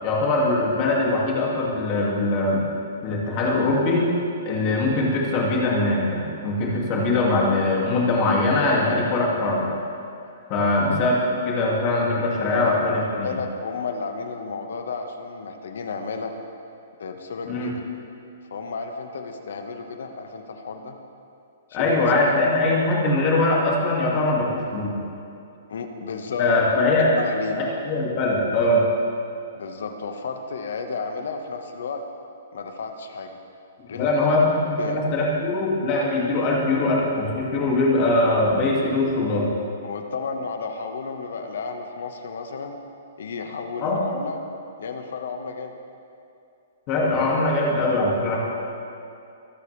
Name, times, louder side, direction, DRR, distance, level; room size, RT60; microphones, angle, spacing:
voice 1, 0.0-2.7 3.0-4.2 4.4-9.7 10.5-11.2 11.5-13.3 17.5-17.7 21.7-25.0 26.4-27.2 27.6-28.9 33.9-39.5 43.8-44.0 46.9-48.4, left 2 dB, 25° left, -3 dB, 2.3 m, -22 dB
voice 2, 13.2-16.3 17.0-17.8 18.5-21.0 21.7-22.5 25.7-26.6 27.2-27.6 29.5-32.0 32.5-33.4 33.9-34.3 34.8-35.0 39.8-42.8 43.2-44.4 44.8-45.7, left 5 dB, 70° left, 5 dB, 1.4 m, -32 dB
23.0 x 12.5 x 3.4 m, 2.6 s
hypercardioid pair, 180°, 0 cm